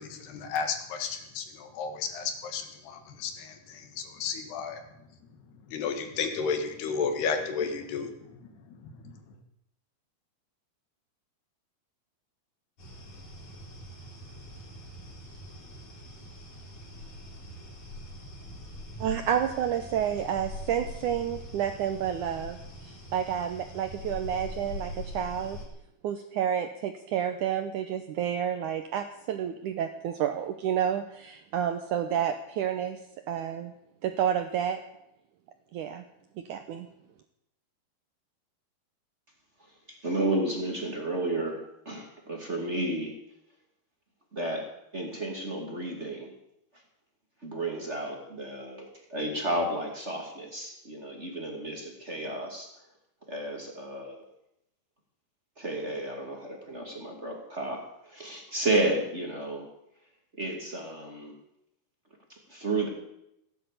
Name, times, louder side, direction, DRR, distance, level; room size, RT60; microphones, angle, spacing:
voice 1, 0.0-4.8 5.5-9.4, left 5 dB, 90° left, 7 dB, 3.9 m, -33 dB
sound 1, 12.8-25.7, left 1 dB, 45° left, 5.4 m, -43 dB
voice 2, 19.0-22.6 22.9-25.6 26.0-33.0 33.3-33.7 34.0-34.8 35.7-36.0 36.4-36.9, right 9 dB, 75° right, 7 dB, 1.9 m, -30 dB
voice 3, 39.6-41.6 41.8-43.1 44.3-44.6 44.9-46.3 47.4-52.7 53.3-54.2 55.6-59.7 60.4-61.3 62.3-62.9, right 2 dB, 25° right, 1 dB, 1.9 m, -32 dB
16.5 x 10.0 x 8.4 m, 0.81 s
omnidirectional pair, 4.5 m